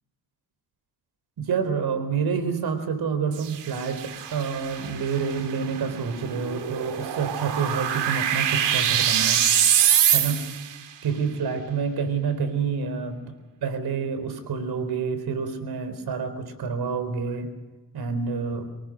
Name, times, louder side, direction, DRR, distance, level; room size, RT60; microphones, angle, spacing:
voice 1, 1.4-9.4 10.1-10.4 11.0-13.2 13.6-17.5 17.9-18.7, right 5 dB, 65° right, 9 dB, 4.2 m, -28 dB
sound 1, 3.3-10.7, right 9 dB, 85° right, 2.6 m, -25 dB
24.5 x 19.0 x 6.4 m, 1.2 s
cardioid pair, 100°, 41 cm